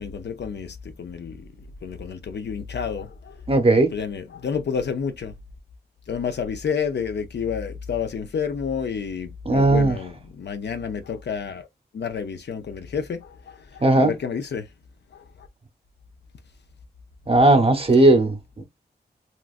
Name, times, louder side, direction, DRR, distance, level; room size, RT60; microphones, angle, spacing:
voice 1, 0.0-1.5 1.8-3.4 3.7-5.3 6.1-11.7 11.9-14.7 15.1-15.5, left 6 dB, 75° left, 0.5 m, -30 dB
voice 2, 3.5-3.9 9.5-10.0 13.8-14.1 17.3-18.6, right 2 dB, 35° right, 0.7 m, -17 dB
3.0 x 2.4 x 2.4 m
wide cardioid pair, 85°, 18 cm